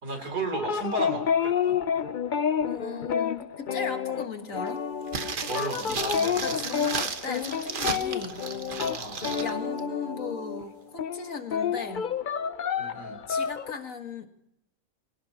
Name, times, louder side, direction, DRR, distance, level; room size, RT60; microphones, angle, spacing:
voice 1, 0.0-1.8 5.4-6.4 8.8-9.2 12.8-13.2, right 2 dB, 65° right, 4 dB, 4.1 m, -34 dB
Guitar improvisation, 0.5-10.7 11.0-13.7, left 7 dB, 80° left, 0.4 m, -29 dB
voice 2, 2.6-4.8 5.9-6.0 6.4-8.4 9.4-12.1 13.3-14.3, left 5 dB, 50° left, 6 dB, 1.9 m, -37 dB
sound 1, 5.1-9.5 9.8-9.9, right 5 dB, 35° right, 1.0 m, -34 dB
26.0 x 17.5 x 2.9 m, 0.80 s
omnidirectional pair, 1.8 m